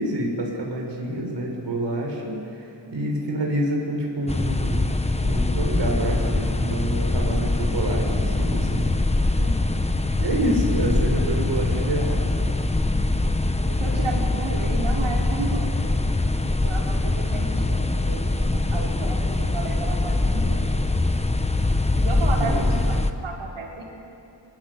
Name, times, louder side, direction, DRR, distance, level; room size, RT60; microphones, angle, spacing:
voice 1, 0.0-5.0 5.2-8.9 10.0-12.2 22.3-22.7, right 1 dB, 60° right, 0 dB, 6.1 m, -27 dB
voice 2, 2.8-3.2 9.4-9.7 12.9-13.1 13.7-15.7 16.6-20.6 22.0-23.0 23.2-23.8, right 3 dB, 85° right, -3 dB, 5.7 m, -33 dB
sound 1, 4.3-23.1, left 2 dB, 15° left, 1.0 m, -23 dB
28.0 x 25.0 x 8.1 m, 2.8 s
wide cardioid pair, 160°, 48 cm